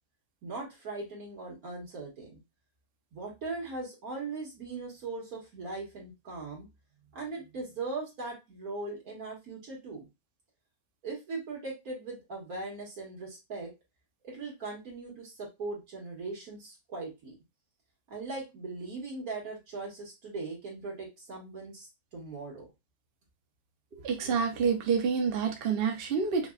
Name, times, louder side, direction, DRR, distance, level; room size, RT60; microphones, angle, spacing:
voice 1, 0.4-2.4 3.1-6.7 7.1-10.1 11.0-13.7 14.2-17.3 18.1-22.7, right 3 dB, 80° right, 2.1 m, -39 dB
voice 2, 23.9-26.5, right 6 dB, 50° right, 0.8 m, -28 dB
5.1 x 2.2 x 2.4 m
omnidirectional pair, 1.5 m